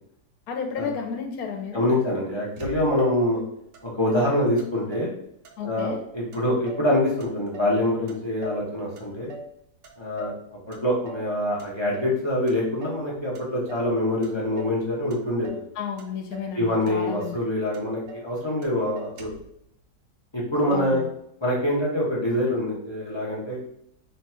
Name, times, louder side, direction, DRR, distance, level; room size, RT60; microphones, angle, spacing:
voice 1, 0.5-1.8 5.6-6.0 15.8-17.4 20.7-21.1, left 6 dB, 70° left, 4 dB, 1.1 m, -32 dB
voice 2, 1.7-3.4 3.8-5.1 5.6-9.3 10.0-10.3 10.7-15.6 16.6-19.3 20.3-21.0 21.4-23.6, left 1 dB, 35° left, -5 dB, 0.4 m, -25 dB
Motor vehicle (road), 2.6-3.2 3.7-3.8 4.1-5.2 5.4-6.0 6.3-6.9 7.2-8.7 9.0-9.6 9.8-10.4 10.7-11.3 11.6-12.2 12.5-13.1 13.4-13.9 14.2-14.8 15.1-15.7 16.0-16.6 16.9-17.0 17.2-17.4 17.7-18.3 18.6-18.7 19.0-19.5, right 3 dB, 85° right, 1.3 m, -42 dB
3.1 x 2.2 x 4.2 m, 0.74 s
omnidirectional pair, 1.8 m